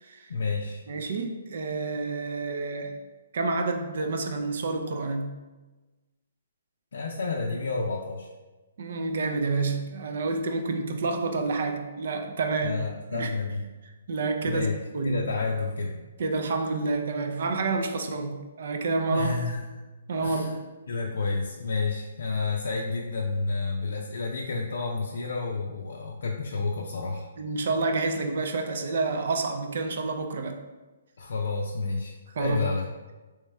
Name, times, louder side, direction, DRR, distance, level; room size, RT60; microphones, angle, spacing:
voice 1, 0.3-0.8 6.9-8.3 12.6-13.6 14.4-14.8 15.0-15.9 19.1-19.7 20.2-20.5 20.9-27.3 31.2-32.8, left 4 dB, 75° left, -1 dB, 0.4 m, -30 dB
voice 2, 0.9-3.0 3.3-5.3 8.8-12.8 13.1-13.3 14.1-14.7 14.9-15.2 16.2-19.3 20.1-20.6 27.4-30.6 32.3-32.6, right 3 dB, 60° right, 5 dB, 0.5 m, -29 dB
3.4 x 3.0 x 3.2 m, 1.2 s
hypercardioid pair, 160°, 0 cm